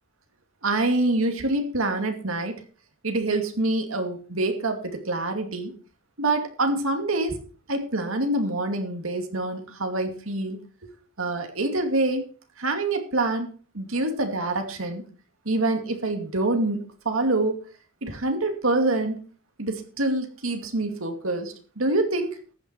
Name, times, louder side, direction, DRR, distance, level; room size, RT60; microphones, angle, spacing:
voice 1, 0.6-2.6 3.0-5.7 6.2-7.4 7.7-10.6 11.2-12.2 12.6-13.5 13.7-15.0 15.5-17.6 18.0-19.2 19.6-22.4, right 2 dB, 90° right, 5 dB, 2.5 m, -26 dB
14.5 x 9.2 x 4.6 m, 0.38 s
head